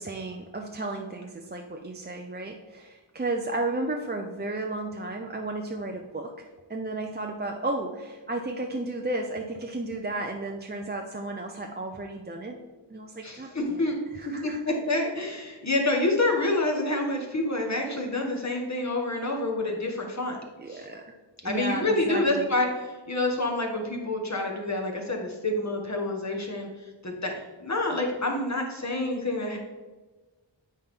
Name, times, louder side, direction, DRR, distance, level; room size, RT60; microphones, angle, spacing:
voice 1, 0.0-6.4 6.7-12.6 12.9-14.7 20.6-21.0 21.4-22.5, right 2 dB, 20° right, 2 dB, 0.6 m, -33 dB
voice 2, 13.2-14.0 14.4-20.4 20.7-20.8 21.4-22.7 23.1-26.7 27.0-27.3 27.6-29.6, left 2 dB, 35° left, 1 dB, 1.4 m, -27 dB
8.7 x 4.3 x 3.7 m, 1.3 s
wide cardioid pair, 55°, 45 cm